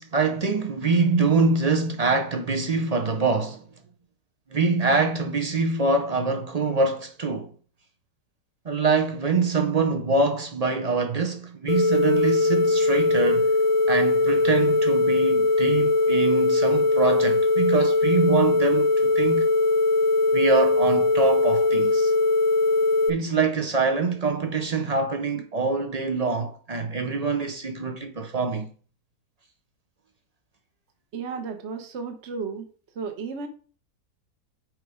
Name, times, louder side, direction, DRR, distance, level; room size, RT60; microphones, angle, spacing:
voice 1, 0.0-3.6 4.5-7.5 8.6-13.5 13.9-19.5 20.3-22.1 23.1-28.7, right 4 dB, 65° right, 0.3 m, -24 dB
sound 1, 11.7-23.1, left 3 dB, 65° left, 1.0 m, -21 dB
voice 2, 31.1-32.7 32.9-33.5, right 5 dB, 50° right, 1.1 m, -33 dB
6.2 x 5.0 x 4.9 m
omnidirectional pair, 1.7 m